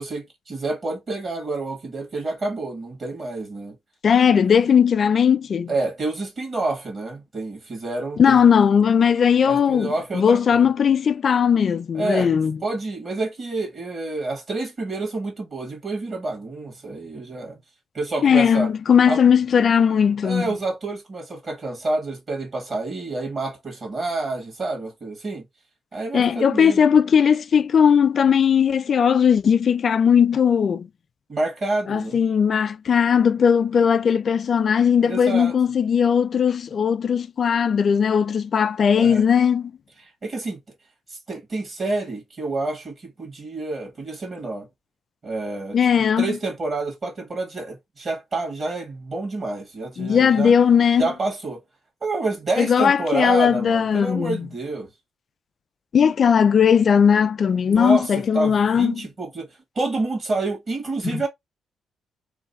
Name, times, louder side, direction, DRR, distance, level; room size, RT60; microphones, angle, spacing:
voice 1, 0.0-3.8 4.3-4.7 5.7-8.4 9.4-10.7 11.9-12.3 12.6-17.6 17.9-18.7 19.1-19.2 20.2-25.4 25.9-26.9 31.3-32.2 35.1-35.5 39.0-39.2 40.0-40.6 41.1-44.7 45.2-45.8 46.2-50.5 51.0-51.6 52.0-54.9 57.7-59.5 59.8-61.3, right 2 dB, 40° right, 1.9 m, -28 dB
voice 2, 4.0-5.7 8.2-12.6 18.2-20.5 26.1-30.9 31.9-39.7 45.7-46.4 50.0-51.1 52.6-54.5 55.9-59.0 61.0-61.2, left 7 dB, 50° left, 0.4 m, -18 dB
3.2 x 2.4 x 4.0 m
cardioid pair, 90°, 0 cm